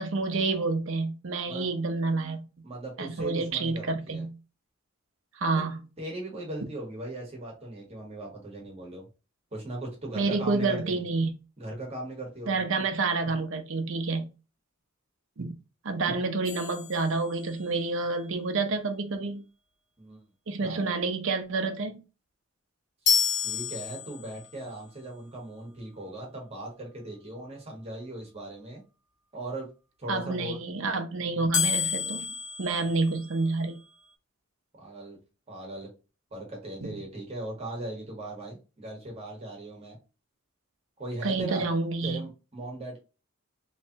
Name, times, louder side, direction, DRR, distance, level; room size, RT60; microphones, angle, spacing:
voice 1, 0.0-2.4 3.0-4.3 5.4-5.8 10.2-11.3 12.5-14.3 15.4-15.5 15.8-19.5 20.5-22.0 30.1-32.2 32.6-33.8 41.2-42.2, right 3 dB, 65° right, 0.8 m, -28 dB
voice 2, 2.6-4.2 6.0-9.1 9.5-11.0 11.6-12.6 20.0-20.2 20.6-20.9 23.4-28.8 29.3-29.7 30.0-30.6 32.8-32.9 34.7-35.2 35.5-35.9 36.3-40.0 41.0-41.7 42.0-43.0, right 1 dB, 30° right, 1.4 m, -38 dB
sound 1, 16.5-17.8 23.1-24.5 31.5-33.7, left 7 dB, 60° left, 0.9 m, -30 dB
3.2 x 3.2 x 2.8 m
head